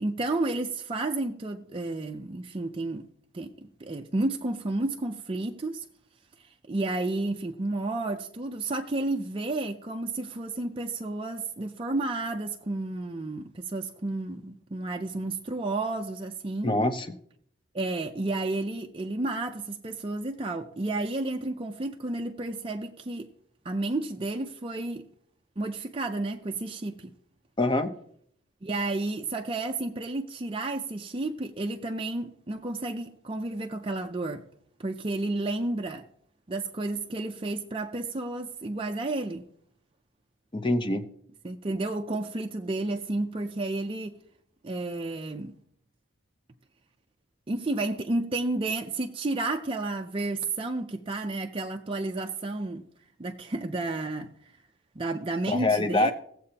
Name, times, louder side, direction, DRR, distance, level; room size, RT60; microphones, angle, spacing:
voice 1, 0.0-3.1 3.3-5.9 6.4-16.8 17.7-23.3 23.6-25.0 25.6-27.1 28.6-34.4 34.8-36.1 36.5-39.5 41.4-44.2 44.6-45.5 47.5-52.9 53.2-54.5 55.0-56.1, right 2 dB, 25° right, 0.5 m, -31 dB
voice 2, 16.6-17.1 27.6-27.9 40.5-41.0 55.5-56.1, left 2 dB, 25° left, 0.7 m, -24 dB
18.0 x 7.6 x 2.8 m
head